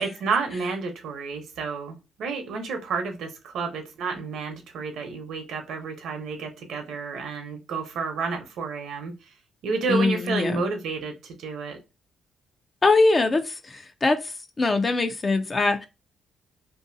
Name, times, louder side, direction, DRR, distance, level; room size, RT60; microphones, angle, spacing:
voice 1, 0.0-9.3 9.6-11.8, right 4 dB, 80° right, 0.8 m, -30 dB
voice 2, 9.9-10.6 12.8-14.2 14.6-15.9, left 3 dB, 30° left, 0.5 m, -22 dB
2.7 x 2.7 x 2.6 m
cardioid pair, 90°, 0 cm